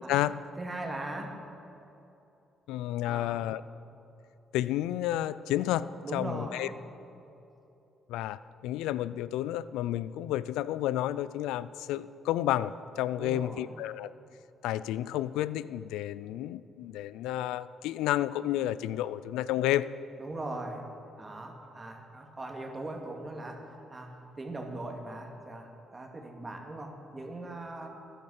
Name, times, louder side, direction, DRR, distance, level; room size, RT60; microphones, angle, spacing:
voice 1, 0.0-1.3 3.0-3.4 6.0-6.8 13.2-13.7 20.2-20.9 21.2-23.6 23.9-27.9, right 2 dB, 30° right, 2 dB, 2.4 m, -40 dB
voice 2, 2.7-3.6 4.5-6.7 8.1-14.1 14.6-19.9, left 13 dB, 85° left, 17 dB, 0.3 m, -31 dB
13.0 x 11.0 x 6.6 m, 2.8 s
supercardioid pair, 60°, 0 cm